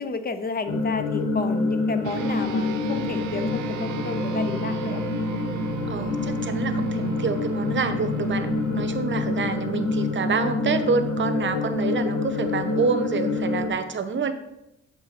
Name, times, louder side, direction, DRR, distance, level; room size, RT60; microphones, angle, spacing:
voice 1, 0.0-5.0 5.9-6.0 6.8-6.9, left 3 dB, 30° left, 8 dB, 0.9 m, -32 dB
sound 1, 0.7-13.7, left 3 dB, 55° left, 1.2 m, -27 dB
sound 2, 2.0-11.8, right 6 dB, 80° right, 0.8 m, -35 dB
voice 2, 4.7-5.0 5.9-8.5 8.7-14.3, right 5 dB, 40° right, 9 dB, 0.9 m, -27 dB
8.0 x 3.8 x 5.8 m, 0.88 s
cardioid pair, 90°, 30 cm